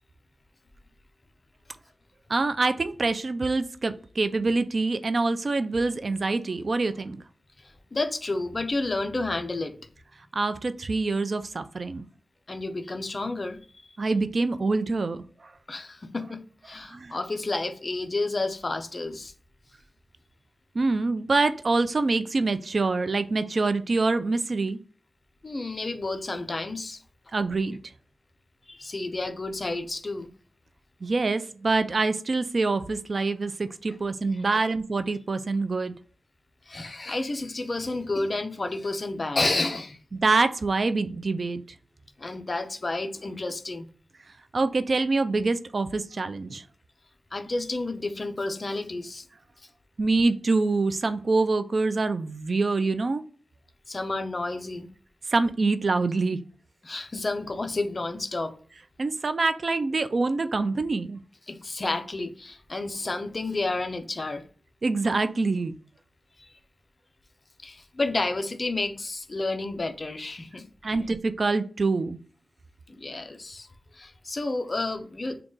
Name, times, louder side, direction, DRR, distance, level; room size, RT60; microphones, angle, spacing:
voice 1, 2.3-7.2 10.3-12.0 14.0-15.5 16.9-17.2 20.7-24.8 27.3-27.8 31.0-35.9 40.1-41.6 44.5-46.6 50.0-53.2 55.3-56.4 59.0-61.2 64.8-65.7 70.8-72.2, right 3 dB, 50° right, 0.3 m, -25 dB
voice 2, 7.6-9.8 12.5-13.9 15.7-19.3 25.4-27.0 28.7-30.3 34.4-34.6 36.7-40.0 42.2-43.9 47.3-49.3 53.9-54.9 56.8-58.5 61.5-64.5 66.4-66.5 67.6-71.0 72.9-73.7 73.9-75.4, left 2 dB, 35° left, 0.5 m, -31 dB
3.6 x 2.3 x 3.7 m
wide cardioid pair, 115°, 0 cm